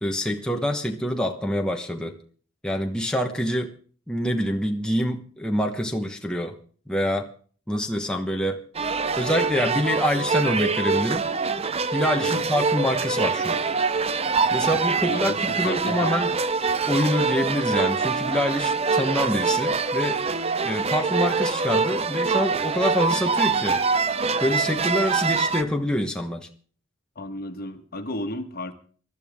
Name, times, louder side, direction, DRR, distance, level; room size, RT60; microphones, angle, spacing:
voice 1, 0.0-2.2 2.6-3.7 4.1-6.6 6.9-7.3 7.7-8.6 9.2-11.3 11.9-13.6 14.5-16.3 16.9-20.2 20.6-23.8 24.4-26.5, equal, 5° left, 2 dB, 1.1 m, -26 dB
sound 1, 8.7-25.6, right 4 dB, 30° right, 0.7 m, -24 dB
voice 2, 15.1-16.1 27.1-28.7, left 1 dB, 45° left, 7 dB, 1.5 m, -33 dB
22.5 x 12.5 x 3.6 m, 0.43 s
head